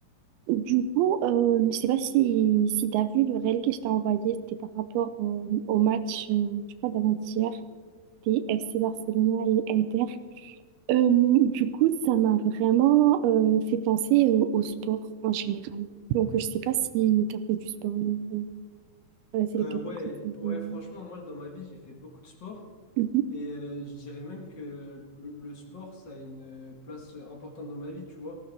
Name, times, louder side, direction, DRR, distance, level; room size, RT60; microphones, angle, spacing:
voice 1, 0.5-4.4 4.7-7.6 8.3-10.2 10.4-10.6 10.9-18.5 19.3-19.7 20.2-20.8 23.0-23.3, right 11 dB, 80° right, 11 dB, 2.5 m, -25 dB
voice 2, 19.6-22.6 23.3-28.4, left 1 dB, 65° left, 1 dB, 1.0 m, -40 dB
19.0 x 16.0 x 3.4 m, 1.5 s
omnidirectional pair, 4.5 m